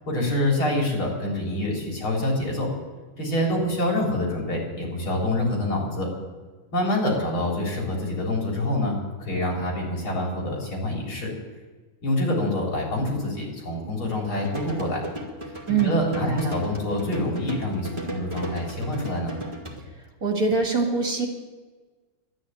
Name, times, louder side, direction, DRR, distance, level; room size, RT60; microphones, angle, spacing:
voice 1, 0.1-2.7 3.2-6.1 6.7-11.3 12.0-15.0 15.8-19.3, left 1 dB, 70° left, -2 dB, 4.4 m, -26 dB
sound 1, 14.3-19.8, right 1 dB, 15° right, 2.2 m, -36 dB
voice 2, 15.7-16.6 20.2-21.3, right 4 dB, 45° right, 2 dB, 2.1 m, -24 dB
12.0 x 9.7 x 9.6 m, 1.3 s
omnidirectional pair, 2.4 m